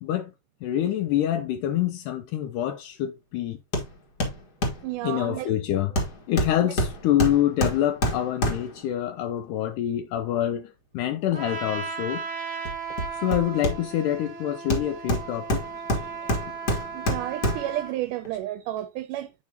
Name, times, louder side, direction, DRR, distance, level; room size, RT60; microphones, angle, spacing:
voice 1, 0.0-0.3 0.6-3.6 5.0-6.0 6.3-12.2 13.1-15.6, left 11 dB, 80° left, 2.0 m, -26 dB
Hammer, 3.7-3.9 4.2-4.9 6.0-8.9 12.6-14.1 14.7-17.8 18.2-18.3, equal, 45° left, 1.4 m, -27 dB
voice 2, 4.8-5.5 6.6-6.7 16.2-16.3 16.9-19.3, right 14 dB, 80° right, 2.0 m, -32 dB
Trumpet, 11.3-18.0, right 5 dB, 35° right, 2.0 m, -36 dB
8.5 x 4.9 x 2.8 m
omnidirectional pair, 3.7 m